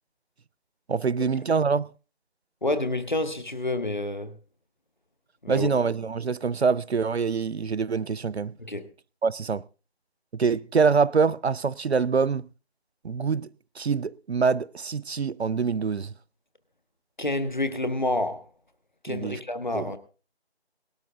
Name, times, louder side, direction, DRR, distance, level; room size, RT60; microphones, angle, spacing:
voice 1, 0.9-1.9 5.5-8.5 9.2-9.6 10.3-12.5 13.0-13.5 13.8-16.1 19.1-19.4 19.7-19.9, right 5 dB, 75° right, 0.6 m, -25 dB
voice 2, 2.6-4.4 5.4-5.7 8.6-8.9 17.2-18.5 19.0-20.0, left 2 dB, 45° left, 1.5 m, -28 dB
18.5 x 12.5 x 3.6 m
figure-of-eight pair, 175°, 33 cm